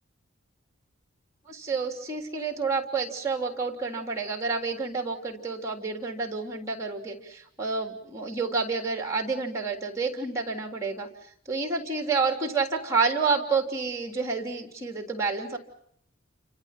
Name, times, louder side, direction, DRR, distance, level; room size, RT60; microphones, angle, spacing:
voice 1, 1.5-11.1 11.5-15.6, right 4 dB, 15° right, 3 dB, 3.2 m, -29 dB
29.5 x 26.0 x 5.9 m, 0.68 s
head